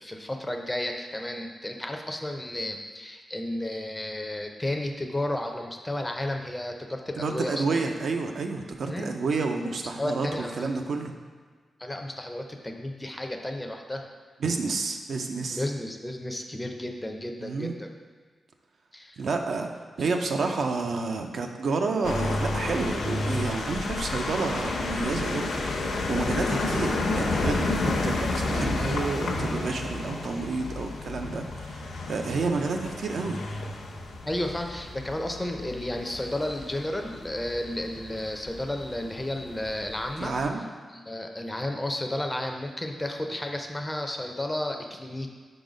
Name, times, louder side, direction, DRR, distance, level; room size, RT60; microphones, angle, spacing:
voice 1, 0.0-7.8 8.9-9.1 10.0-10.8 11.8-14.1 15.5-17.9 18.9-19.2 34.3-40.3 41.1-45.3, left 1 dB, 10° left, 3 dB, 0.5 m, -32 dB
voice 2, 7.2-11.1 14.4-15.6 17.4-17.7 19.2-19.7 20.0-33.4 40.2-40.6, right 4 dB, 65° right, 4 dB, 0.5 m, -30 dB
sound 1, 22.0-40.4, left 2 dB, 80° left, 0.8 m, -31 dB
5.2 x 3.9 x 5.0 m, 1.5 s
wide cardioid pair, 135°, 0 cm